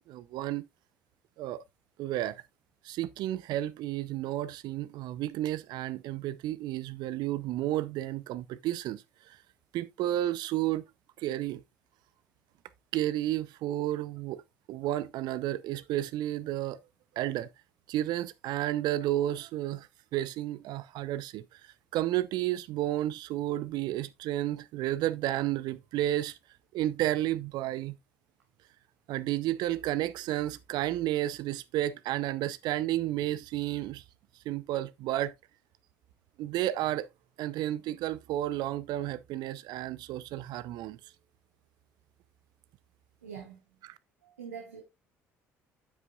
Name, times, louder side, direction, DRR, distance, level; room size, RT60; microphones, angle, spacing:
voice 1, 0.1-0.6 1.4-1.6 2.0-2.4 2.8-9.0 9.7-10.8 11.2-11.6 12.9-14.4 14.7-16.8 17.2-17.5 17.9-19.9 20.1-21.4 21.9-26.3 26.7-28.0 29.1-34.0 34.4-35.3 36.4-37.1 37.4-41.0, right 14 dB, 60° right, 0.7 m, -31 dB
voice 2, 43.2-43.6 44.2-44.8, right 7 dB, 85° right, 1.7 m, -44 dB
9.4 x 8.2 x 2.4 m
hypercardioid pair, 55°, 8 cm